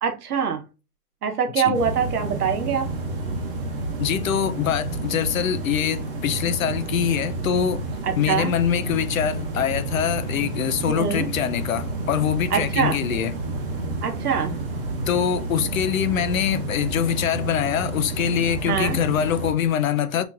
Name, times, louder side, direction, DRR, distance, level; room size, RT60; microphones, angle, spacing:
voice 1, 0.0-0.6 1.2-2.9 8.0-8.5 10.9-11.3 12.5-12.9 14.0-14.6 18.7-19.0, right 7 dB, 70° right, 1.0 m, -24 dB
sound 1, 1.7-19.5, right 2 dB, 35° right, 0.9 m, -30 dB
voice 2, 4.0-7.8 8.2-13.4 15.1-20.2, left 9 dB, 60° left, 0.5 m, -24 dB
5.4 x 2.9 x 2.3 m
hypercardioid pair, 175°, 47 cm